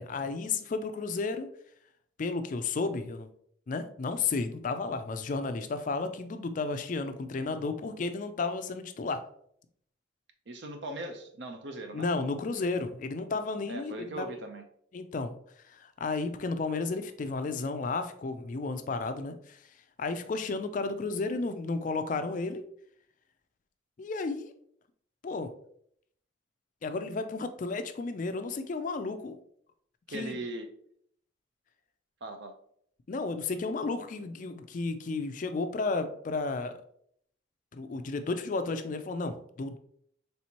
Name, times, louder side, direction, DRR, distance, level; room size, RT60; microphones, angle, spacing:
voice 1, 0.0-1.5 2.2-3.3 3.7-9.2 11.9-14.3 14.9-15.4 15.7-19.6 20.0-22.6 24.0-24.5 25.2-25.5 26.8-29.4 30.1-30.4 33.1-36.8 37.7-39.8, left 3 dB, 40° left, 9 dB, 0.3 m, -33 dB
voice 2, 10.5-12.1 13.7-14.6 30.1-30.7 32.2-32.5, right 2 dB, 60° right, 5 dB, 0.6 m, -39 dB
4.3 x 3.4 x 2.8 m, 0.66 s
head